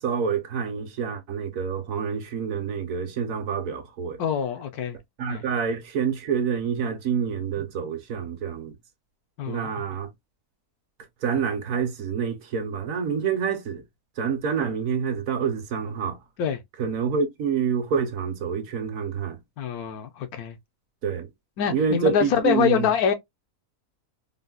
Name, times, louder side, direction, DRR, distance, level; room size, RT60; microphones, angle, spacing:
voice 1, 0.0-4.2 5.2-8.7 9.5-10.1 11.2-13.8 14.2-16.2 16.8-19.4 21.0-21.3 21.7-22.9, right 6 dB, 70° right, 1.0 m, -27 dB
voice 2, 4.2-5.0 5.3-5.4 9.4-9.7 16.4-16.6 19.6-20.6 21.6-23.1, left 8 dB, 80° left, 1.2 m, -25 dB
3.8 x 2.0 x 2.2 m
omnidirectional pair, 1.6 m